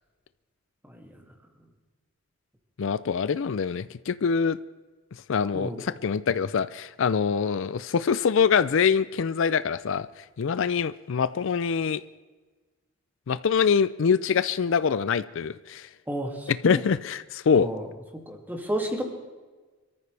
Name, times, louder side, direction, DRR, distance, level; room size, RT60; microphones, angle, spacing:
voice 1, 0.8-1.2 5.5-5.8 16.1-16.8 17.6-17.9 18.1-19.0, right 1 dB, 10° right, 1 dB, 2.3 m, -32 dB
voice 2, 2.8-4.6 5.3-10.1 10.4-12.0 13.3-15.9 16.5-17.7, left 6 dB, 65° left, 15 dB, 0.4 m, -24 dB
26.0 x 14.0 x 3.4 m, 1.3 s
head